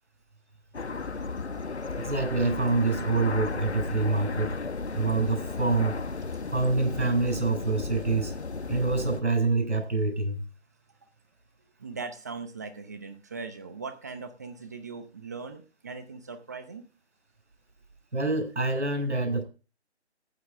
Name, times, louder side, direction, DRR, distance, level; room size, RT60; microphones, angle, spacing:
sound 1, 0.7-9.2, left 4 dB, 70° left, 1.6 m, -34 dB
voice 1, 2.0-4.6 4.9-6.0 6.5-8.3 8.7-10.4 18.1-19.4, right 3 dB, 80° right, 6.9 m, -26 dB
voice 2, 11.8-16.8, right 4 dB, 15° right, 0.7 m, -40 dB
14.5 x 9.6 x 3.6 m
figure-of-eight pair, 155°, 34 cm